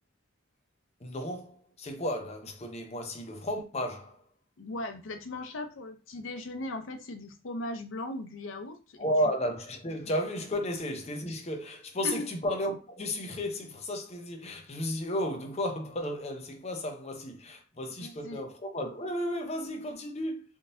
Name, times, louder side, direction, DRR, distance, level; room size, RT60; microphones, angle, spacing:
voice 1, 1.0-4.2 9.0-20.4, equal, 35° left, 0.6 m, -33 dB
voice 2, 4.6-9.0 9.3-9.4 12.0-12.2 18.0-18.4, left 2 dB, 80° left, 0.6 m, -38 dB
3.6 x 2.7 x 2.6 m
head